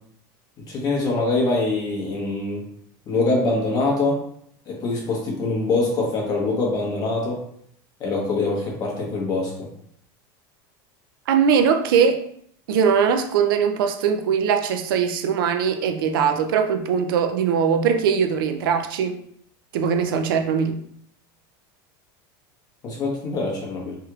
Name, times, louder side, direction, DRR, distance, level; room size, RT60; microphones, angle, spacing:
voice 1, 0.7-2.6 3.1-4.2 4.7-7.4 8.0-9.7 22.8-24.0, left 3 dB, 35° left, -2 dB, 1.2 m, -24 dB
voice 2, 11.3-12.2 12.7-19.2 19.7-20.8, right 7 dB, 90° right, 6 dB, 0.5 m, -21 dB
3.3 x 3.0 x 2.4 m, 0.66 s
supercardioid pair, 140°, 11 cm